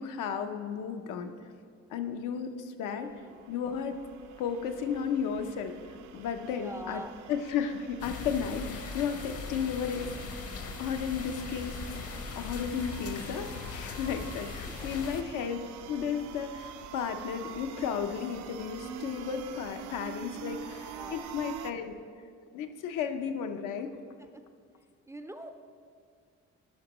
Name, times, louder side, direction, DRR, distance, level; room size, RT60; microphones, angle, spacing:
voice 1, 0.0-1.3 1.9-3.1 3.5-4.0 4.4-5.7 6.1-10.4 10.8-15.6 15.9-21.9 22.5-23.9, left 7 dB, 90° left, 6 dB, 0.6 m, -34 dB
voice 2, 2.9-3.4 6.6-7.1 14.8-14.9 20.3-20.4 20.9-21.3 24.3-24.4 25.1-25.5, right 1 dB, 10° right, 7 dB, 0.3 m, -44 dB
sound 1, 3.0-21.7, right 8 dB, 75° right, 0.5 m, -46 dB
sound 2, 8.0-15.2, left 5 dB, 50° left, 0.7 m, -40 dB
12.0 x 5.3 x 3.0 m, 2.1 s
cardioid pair, 90°, 30 cm